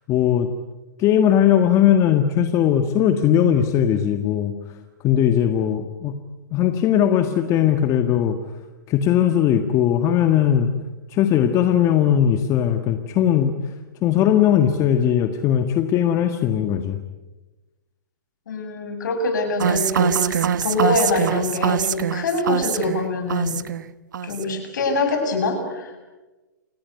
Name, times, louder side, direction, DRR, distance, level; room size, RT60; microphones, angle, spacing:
voice 1, 0.1-0.5 1.0-4.5 5.0-6.1 6.5-8.4 8.9-10.7 11.1-13.5 14.0-17.0, left 10 dB, 30° left, 7 dB, 1.7 m, -19 dB
voice 2, 18.5-23.6 24.2-26.1, left 2 dB, 70° left, 5 dB, 7.7 m, -24 dB
sound 1, 19.6-23.9 24.1-24.6, right 8 dB, 70° right, 1.1 m, -23 dB
29.5 x 17.5 x 9.5 m, 1.1 s
hypercardioid pair, 125°, 10 cm